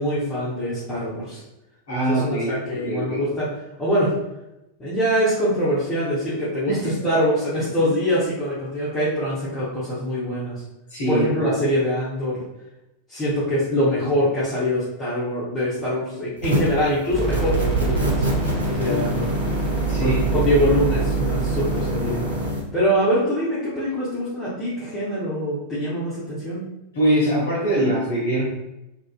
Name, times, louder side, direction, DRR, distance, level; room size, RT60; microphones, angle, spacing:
voice 1, 0.0-1.4 2.1-3.5 3.8-4.1 4.8-10.6 11.1-12.4 13.1-18.3 18.7-19.3 20.0-22.2 22.7-26.6, equal, 20° left, -11 dB, 0.7 m, -24 dB
voice 2, 1.9-3.2 6.7-7.1 10.9-11.5 18.9-19.2 19.9-20.2 26.9-28.4, right 1 dB, 60° left, -5 dB, 0.7 m, -23 dB
sound 1, 16.4-16.8 17.3-22.6, left 1 dB, 80° right, 0.5 m, -27 dB
sound 2, 17.1-22.5, right 5 dB, 20° right, 0.7 m, -25 dB
2.4 x 2.1 x 2.4 m, 0.93 s
figure-of-eight pair, 90°, 0 cm